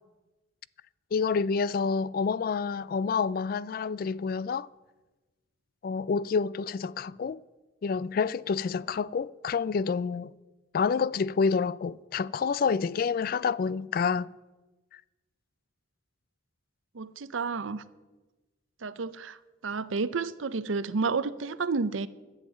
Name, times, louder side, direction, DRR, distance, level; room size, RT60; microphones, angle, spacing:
voice 1, 1.1-4.7 5.8-7.4 7.8-10.3 10.7-14.3, left 5 dB, 50° left, 0.3 m, -28 dB
voice 2, 16.9-17.8 18.8-19.4 19.6-22.1, right 4 dB, 85° right, 0.6 m, -30 dB
11.5 x 7.4 x 8.9 m
head